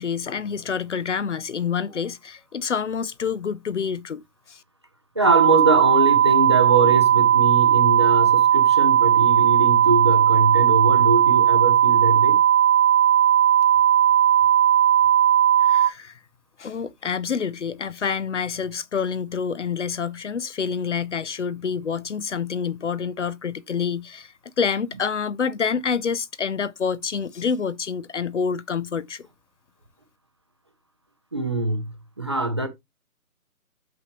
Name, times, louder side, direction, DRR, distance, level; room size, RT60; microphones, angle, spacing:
voice 1, 0.0-4.6 15.6-16.2 16.6-29.2, left 6 dB, 55° left, 0.7 m, -27 dB
voice 2, 5.1-12.4 31.3-32.7, right 2 dB, 20° right, 0.6 m, -23 dB
sound 1, 5.2-15.9, right 10 dB, 60° right, 0.7 m, -17 dB
8.5 x 6.0 x 3.0 m
hypercardioid pair, 160°, 45 cm